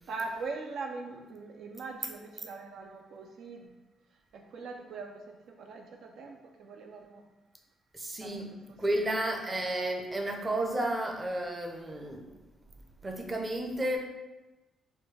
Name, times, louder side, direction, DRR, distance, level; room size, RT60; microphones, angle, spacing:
voice 1, 0.1-3.8 4.3-7.3 8.2-9.0, right 3 dB, 70° right, 3 dB, 0.3 m, -42 dB
voice 2, 7.9-8.5 8.8-12.3 13.0-14.0, right 1 dB, 25° right, 3 dB, 0.6 m, -32 dB
4.3 x 2.3 x 3.2 m, 1.1 s
cardioid pair, 90°, 0 cm